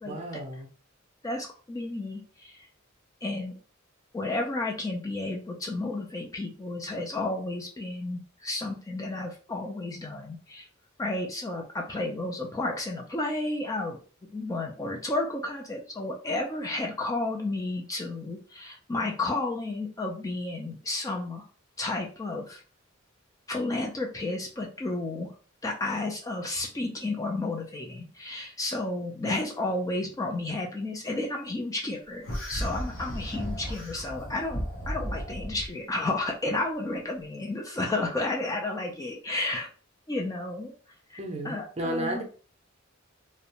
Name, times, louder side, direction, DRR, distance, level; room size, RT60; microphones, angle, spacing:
voice 1, 0.0-0.7 41.2-42.2, right 1 dB, 30° right, 2 dB, 0.6 m, -33 dB
voice 2, 1.2-2.6 3.2-3.6 4.1-10.7 11.0-14.0 14.3-21.4 21.8-22.6 23.5-25.3 25.6-39.7 40.1-40.7 41.1-41.2 41.4-42.2, left 2 dB, 15° left, 0 dB, 0.3 m, -32 dB
sound 1, 32.2-35.7, equal, 70° left, 0.7 m, -34 dB
2.4 x 2.0 x 2.8 m, 0.39 s
head